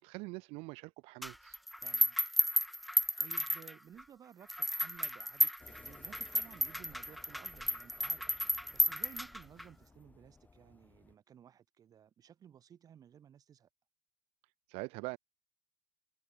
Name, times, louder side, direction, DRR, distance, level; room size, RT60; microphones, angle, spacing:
voice 1, 0.0-1.6 14.7-15.2, right 26 dB, 65° right, 2.5 m, -43 dB
sound 1, 1.2-4.0 4.5-9.6, equal, ahead, 0.5 m, -33 dB
voice 2, 1.8-2.2 2.9-13.7, right 9 dB, 35° right, 7.2 m, -57 dB
sound 2, 5.6-11.1, left 4 dB, 15° left, 6.8 m, -60 dB
supercardioid pair, 125°, 11 cm